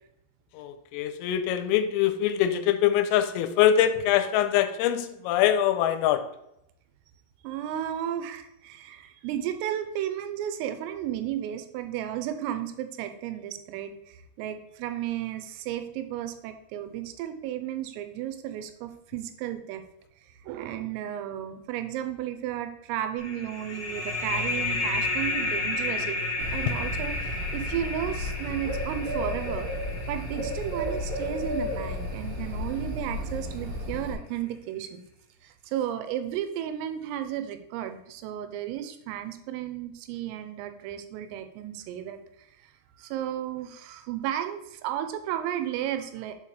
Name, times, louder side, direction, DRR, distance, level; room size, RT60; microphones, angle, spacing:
voice 1, 0.6-6.2, left 11 dB, 85° left, 10 dB, 3.2 m, -23 dB
voice 2, 7.4-19.8 20.4-29.7 30.1-35.0 35.4-42.2 42.6-42.7 43.0-46.3, right 11 dB, 85° right, 8 dB, 3.3 m, -33 dB
sound 1, 23.2-32.5, left 2 dB, 50° left, 2.4 m, -32 dB
Bird, 26.4-34.1, left 1 dB, 55° right, 2.9 m, -33 dB
7.1 x 5.6 x 3.1 m, 0.81 s
omnidirectional pair, 5.9 m